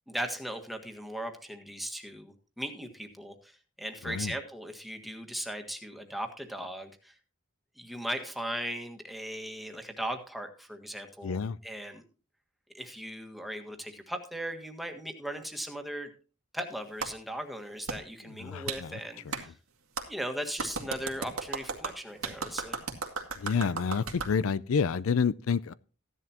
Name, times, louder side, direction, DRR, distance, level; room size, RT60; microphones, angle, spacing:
voice 1, 0.1-7.1 7.8-12.0 12.7-16.1 16.5-19.5 20.1-22.8, equal, ahead, 1.6 m, -38 dB
voice 2, 4.0-4.3 11.2-11.6 18.2-19.0 19.3-19.4 23.4-25.7, left 5 dB, 70° left, 0.4 m, -29 dB
Clapping, 17.0-17.1 17.9-18.0 18.7-18.8 19.3-19.4 20.0-20.1 20.6-24.3, right 4 dB, 90° right, 2.1 m, -35 dB
15.0 x 11.0 x 2.9 m
head